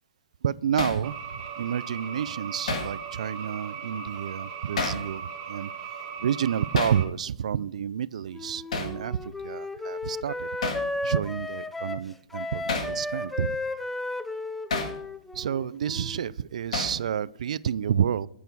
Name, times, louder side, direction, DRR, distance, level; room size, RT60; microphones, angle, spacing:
voice 1, 0.4-5.7 6.2-10.5 11.0-13.6 15.3-18.3, right 8 dB, 80° right, 19 dB, 0.3 m, -29 dB
Hammer, 0.8-1.0 2.7-3.0 4.8-5.1 6.8-7.0 8.7-9.0 10.6-10.9 12.7-13.0 14.7-15.0 16.7-17.0, left 3 dB, 80° left, 1.5 m, -29 dB
sound 1, 1.0-7.0, right 6 dB, 35° right, 1.2 m, -38 dB
Wind instrument woodwind instrument, 8.3-16.3, left 2 dB, 5° left, 0.3 m, -34 dB
8.1 x 6.9 x 4.6 m, 0.67 s
hypercardioid pair, 155°, 4 cm